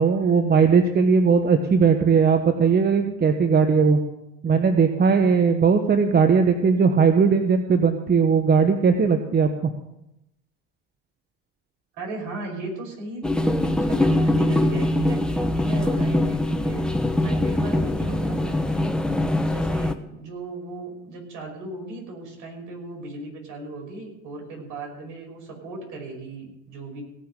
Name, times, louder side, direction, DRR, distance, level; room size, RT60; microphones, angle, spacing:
voice 1, 0.0-4.0 4.4-9.7, right 5 dB, 25° right, 7 dB, 1.2 m, -19 dB
voice 2, 11.9-16.9 17.2-18.9 19.4-27.0, right 2 dB, 60° right, 0 dB, 5.7 m, -36 dB
sound 1, 13.2-19.9, left 1 dB, ahead, 1.1 m, -22 dB
17.5 x 5.8 x 8.1 m, 0.86 s
hypercardioid pair, 70°, 35 cm